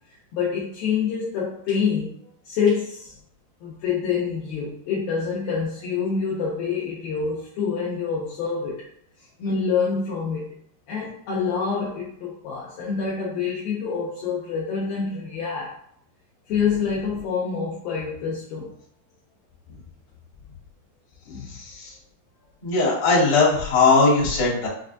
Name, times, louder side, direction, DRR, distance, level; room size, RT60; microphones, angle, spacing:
voice 1, 0.3-3.1 3.6-8.8 9.4-10.5 10.9-15.7 16.5-18.7 21.3-21.6, left 6 dB, 85° left, -6 dB, 2.0 m, -26 dB
voice 2, 21.5-21.9 22.6-24.7, left 3 dB, 55° left, -8 dB, 1.6 m, -19 dB
6.5 x 2.2 x 2.5 m, 0.66 s
omnidirectional pair, 5.0 m